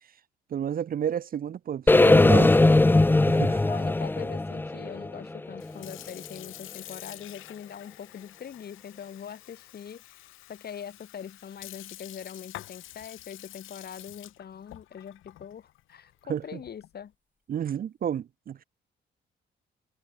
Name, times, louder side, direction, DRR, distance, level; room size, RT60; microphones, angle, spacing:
voice 1, 0.5-2.5 3.2-3.6 16.3-16.6 17.5-18.6, right 9 dB, 45° right, 0.6 m, -31 dB
sound 1, 1.9-5.9, left 2 dB, 10° left, 0.6 m, -20 dB
voice 2, 3.7-17.1, left 8 dB, 55° left, 3.2 m, -43 dB
Sink (filling or washing) / Fill (with liquid), 5.5-17.0, left 15 dB, 90° left, 4.2 m, -47 dB
cardioid pair, 90°, 20 cm